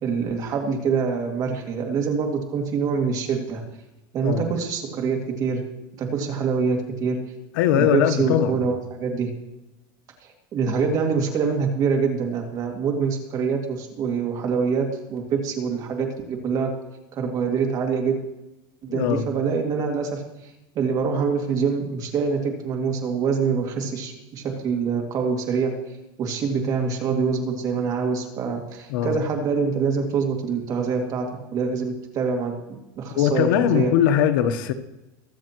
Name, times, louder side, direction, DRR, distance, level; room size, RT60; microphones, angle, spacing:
voice 1, 0.0-3.6 4.1-5.6 6.0-7.2 7.8-9.3 10.2-16.7 17.1-18.2 18.8-20.2 20.7-25.7 26.2-31.3 31.5-32.6 33.0-33.9, right 5 dB, 35° right, 2.3 m, -25 dB
voice 2, 7.5-8.6 18.9-19.3 28.9-29.2 33.1-34.7, left 9 dB, 75° left, 1.0 m, -20 dB
22.5 x 7.7 x 3.0 m
supercardioid pair, 160°, 11 cm